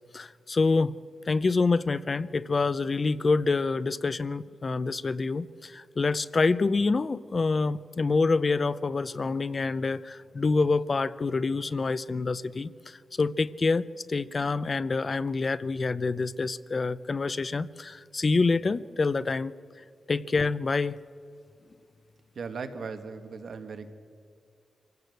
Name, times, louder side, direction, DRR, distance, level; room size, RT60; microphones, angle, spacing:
voice 1, 0.1-0.9 1.3-19.5 20.1-21.0, left 3 dB, 35° left, 17 dB, 0.5 m, -27 dB
voice 2, 22.4-23.9, right 5 dB, 65° right, 7 dB, 1.7 m, -37 dB
25.5 x 16.5 x 8.0 m, 2.3 s
wide cardioid pair, 115°, 0 cm